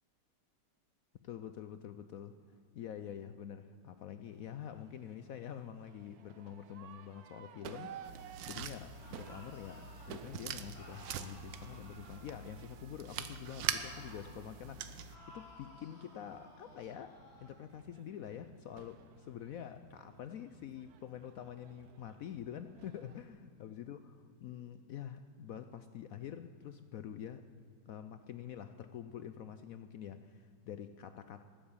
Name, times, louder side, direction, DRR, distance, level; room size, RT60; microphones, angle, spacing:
voice 1, 1.2-2.4 2.7-27.5 27.9-31.4, left 9 dB, 70° left, 11 dB, 0.8 m, -47 dB
Crowd / Fireworks, 4.3-23.3, right 7 dB, 65° right, 1.2 m, -56 dB
sound 1, 8.0-15.2, right 8 dB, 85° right, 1.5 m, -43 dB
sound 2, 8.8-10.2 10.7-13.0 13.7-14.4 15.1-17.6, left 1 dB, 35° left, 3.3 m, -57 dB
19.5 x 8.7 x 7.2 m, 2.4 s
omnidirectional pair, 1.9 m